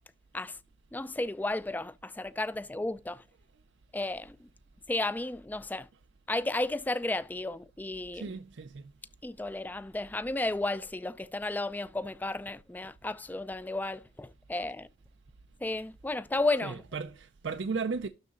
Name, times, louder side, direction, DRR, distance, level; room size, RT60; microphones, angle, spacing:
voice 1, 0.9-3.2 3.9-4.5 4.9-5.9 6.3-8.4 9.2-14.9 15.6-16.8, left 2 dB, 10° left, 0.3 m, -33 dB
voice 2, 8.1-8.9 16.6-18.1, right 4 dB, 80° right, 0.5 m, -35 dB
12.0 x 4.0 x 3.7 m
head